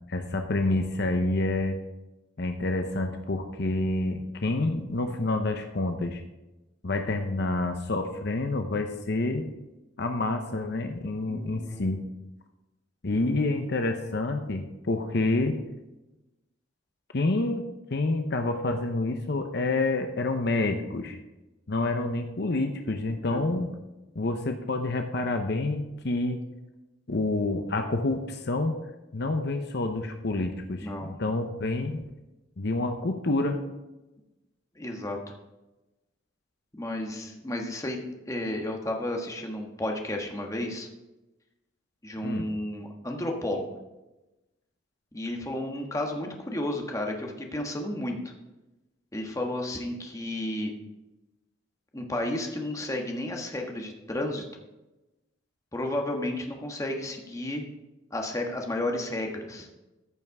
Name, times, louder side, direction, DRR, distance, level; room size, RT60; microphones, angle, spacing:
voice 1, 0.1-1.8 2.4-6.2 6.8-9.5 10.0-12.0 13.0-15.6 17.1-21.2 21.7-23.7 24.1-26.4 27.1-28.8 29.1-32.1 32.6-33.6 42.2-42.5, left 2 dB, 60° left, 5 dB, 0.8 m, -28 dB
voice 2, 11.3-11.8 23.3-23.7 30.8-31.1 34.7-35.2 36.7-40.9 42.0-43.7 45.1-48.3 49.1-50.7 51.9-54.4 55.7-57.7 58.1-59.7, left 1 dB, 15° left, 2 dB, 1.4 m, -32 dB
14.5 x 5.6 x 4.8 m, 1.0 s
head